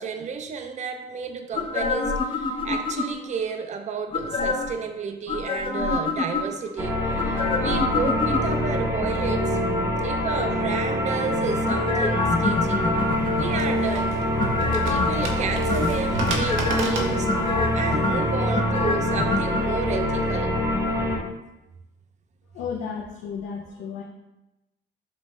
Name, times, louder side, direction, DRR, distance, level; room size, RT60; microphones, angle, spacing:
voice 1, 0.0-9.6 10.0-12.9 13.3-14.2 14.8-20.6, right 5 dB, 35° right, 7 dB, 0.4 m, -32 dB
sound 1, 1.5-3.4 4.1-4.8 5.3-6.7 7.2-8.9 11.7-13.8 14.4-15.3 15.7-16.8 17.3-19.6 19.9-20.0, left 3 dB, 25° left, 0.5 m, -26 dB
sound 2, 6.8-21.2, left 1 dB, 15° right, 0.8 m, -25 dB
sound 3, 13.0-18.3, right 3 dB, 80° right, 0.7 m, -34 dB
voice 2, 22.5-24.0, left 6 dB, 85° left, -1 dB, 0.5 m, -33 dB
5.1 x 2.6 x 3.1 m, 0.97 s
cardioid pair, 90°, 20 cm